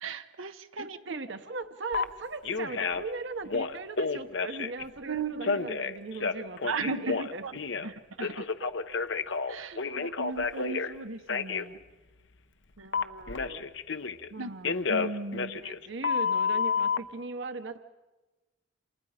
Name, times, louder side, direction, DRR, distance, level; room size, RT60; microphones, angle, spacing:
voice 1, 0.0-1.2 5.0-5.6 6.7-7.2 7.4-7.5 7.8-8.5 9.5-11.8 14.4-14.5 14.9-15.6, right 4 dB, 90° right, 7 dB, 1.1 m, -36 dB
voice 2, 0.8-7.4 7.7-7.9 8.6-8.7 12.8-13.6 14.3-14.9 15.6-17.8, right 3 dB, 60° right, 8 dB, 1.0 m, -39 dB
Telephone, 1.9-2.0 2.4-3.1 3.5-4.8 5.4-7.9 8.2-10.9 11.3-11.7 12.9-14.3 14.6-17.0, left 5 dB, 65° left, 0.9 m, -30 dB
29.0 x 28.0 x 5.0 m, 1.2 s
head